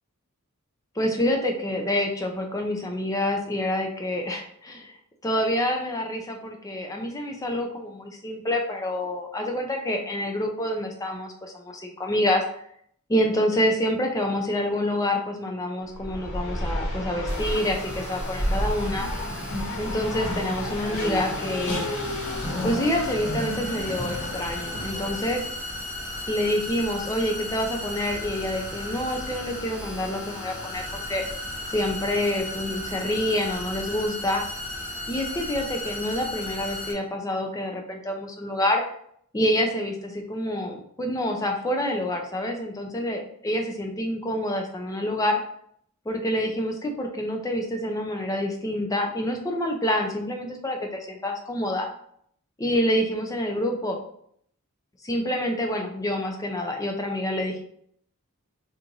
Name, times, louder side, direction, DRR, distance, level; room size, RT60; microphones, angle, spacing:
voice 1, 1.0-4.9 5.2-12.4 13.1-19.1 19.8-21.9 22.6-25.4 26.3-31.2 31.7-34.4 35.1-38.8 39.3-45.4 46.1-51.9 52.6-54.0 55.0-57.6, left 1 dB, 15° left, 2 dB, 0.4 m, -27 dB
Race car auto racing, 15.9-25.6, left 1 dB, 85° left, 1.3 m, -31 dB
sound 1, 17.3-36.9, left 1 dB, 10° right, 1.3 m, -36 dB
2.9 x 2.5 x 3.7 m, 0.67 s
head